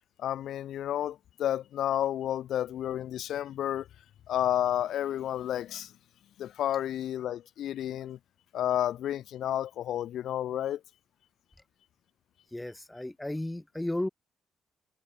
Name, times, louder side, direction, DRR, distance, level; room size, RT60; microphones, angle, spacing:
voice 1, 0.2-3.9 4.3-5.9 6.4-8.2 8.5-10.8, left 11 dB, 75° left, 1.0 m, -31 dB
voice 2, 12.5-14.1, left 1 dB, 10° left, 0.8 m, -34 dB
cardioid pair, 90°, 0 cm